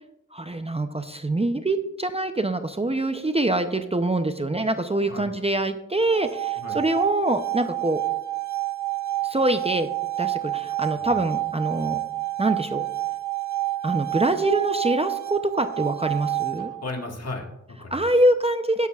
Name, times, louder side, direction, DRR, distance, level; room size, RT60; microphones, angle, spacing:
voice 1, 0.3-8.0 9.2-9.9 10.2-12.0 12.4-12.8 13.8-16.7 17.9-18.9, right 1 dB, 20° right, 8 dB, 0.6 m, -24 dB
sound 1, 6.0-17.0, right 16 dB, 65° right, 0.7 m, -29 dB
voice 2, 16.6-18.1, left 2 dB, 50° left, 2 dB, 1.8 m, -36 dB
11.5 x 11.5 x 2.4 m, 0.87 s
cardioid pair, 55°, 31 cm